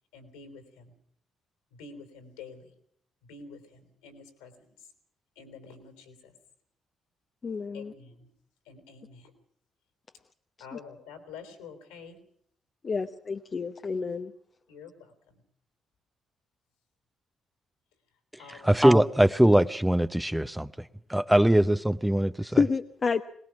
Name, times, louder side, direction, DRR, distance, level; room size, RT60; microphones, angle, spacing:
voice 1, 0.1-0.9 1.7-2.7 3.2-4.9 5.4-6.3 7.7-8.3 8.7-9.3 10.6-12.2 14.7-15.4 18.4-18.9, left 5 dB, 80° left, 7 dB, 3.9 m, -48 dB
voice 2, 7.4-7.9 12.8-14.3 22.4-23.2, left 5 dB, 40° left, 6 dB, 1.0 m, -29 dB
voice 3, 18.6-20.7 21.1-22.6, right 1 dB, 5° right, 12 dB, 0.9 m, -21 dB
22.5 x 20.0 x 6.0 m, 0.67 s
hypercardioid pair, 40°, 0 cm